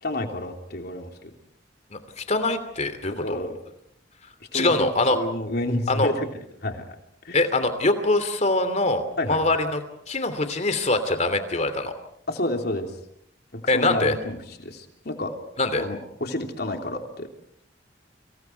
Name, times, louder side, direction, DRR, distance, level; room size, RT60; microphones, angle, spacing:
voice 1, 0.0-1.3 3.2-3.6 4.5-4.7 5.1-6.9 7.2-7.4 9.2-9.5 12.3-12.9 13.5-15.3 15.8-17.3, left 1 dB, 55° left, 4 dB, 3.4 m, -30 dB
voice 2, 1.9-3.4 4.5-5.2 5.9-6.1 7.3-9.8 10.1-11.9 13.7-14.1 15.6-15.8, left 2 dB, 35° left, 9 dB, 2.9 m, -23 dB
30.0 x 26.0 x 4.7 m, 0.70 s
head